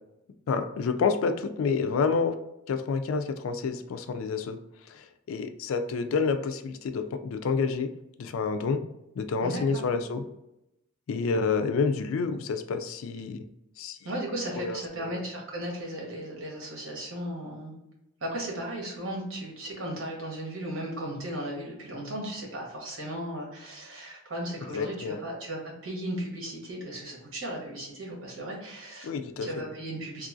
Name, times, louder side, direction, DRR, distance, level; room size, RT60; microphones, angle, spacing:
voice 1, 0.5-2.3 2.7-4.6 4.9-7.9 8.2-8.8 9.2-10.2 11.1-13.4 13.8-14.0 14.6-15.2 24.7-25.2 29.0-29.6, left 5 dB, 75° left, 8 dB, 0.3 m, -28 dB
voice 2, 9.4-9.9 14.0-17.8 18.2-29.1 29.4-30.3, right 1 dB, 70° right, -2 dB, 1.1 m, -36 dB
3.0 x 2.4 x 2.5 m, 0.87 s
head